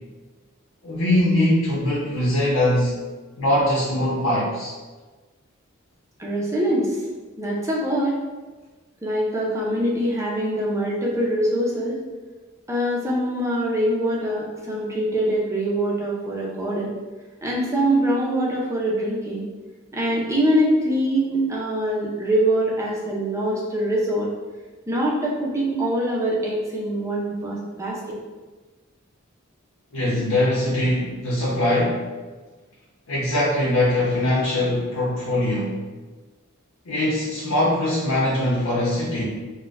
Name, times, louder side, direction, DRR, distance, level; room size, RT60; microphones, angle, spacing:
voice 1, 0.8-3.0 3.4-4.7 29.9-32.0 33.1-35.8 36.8-39.2, left 1 dB, 90° left, -7 dB, 0.8 m, -22 dB
voice 2, 6.2-7.0 7.4-8.1 9.0-12.0 12.7-16.9 17.4-19.5 19.9-24.3 24.9-28.0, right 1 dB, 15° right, -4 dB, 0.6 m, -23 dB
4.0 x 2.1 x 2.5 m, 1.3 s
head